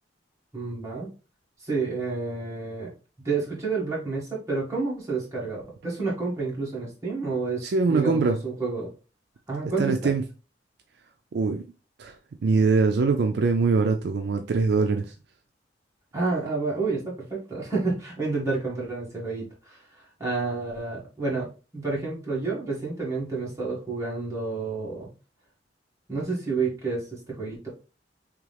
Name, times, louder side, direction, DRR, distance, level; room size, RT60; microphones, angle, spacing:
voice 1, 0.5-1.1 1.6-2.9 3.2-8.9 9.5-9.9 16.1-19.8 20.2-21.5 21.7-25.1 26.1-27.7, right 3 dB, 15° right, 1.6 m, -29 dB
voice 2, 7.6-8.4 9.8-10.2 11.3-11.6 12.0-12.2 12.4-15.1, right 4 dB, 60° right, 0.4 m, -23 dB
3.7 x 3.0 x 3.2 m
head